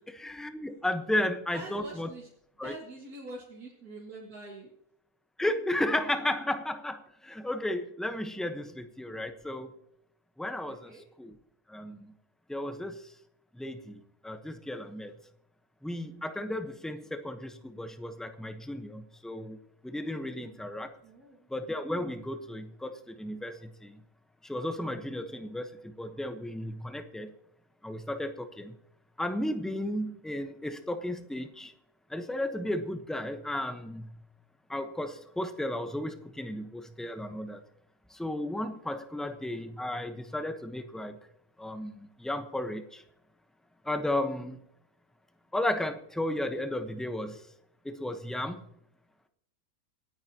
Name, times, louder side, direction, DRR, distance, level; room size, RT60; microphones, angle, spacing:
voice 1, 0.1-2.1 2.6-2.7 5.4-9.7 10.4-11.4 11.7-12.1 12.5-13.1 13.5-15.1 15.8-19.6 19.8-20.9 21.5-24.0 24.4-27.3 27.8-28.7 29.2-31.7 32.1-34.2 34.7-37.6 38.1-41.2 41.6-43.0 43.8-44.6 45.5-47.5 47.8-48.6, left 1 dB, ahead, 7 dB, 0.8 m, -34 dB
voice 2, 1.5-2.3 2.6-4.7 10.7-11.1 21.0-21.5 39.2-39.3, right 2 dB, 85° right, -2 dB, 2.5 m, -45 dB
27.0 x 9.7 x 2.9 m, 0.74 s
omnidirectional pair, 1.5 m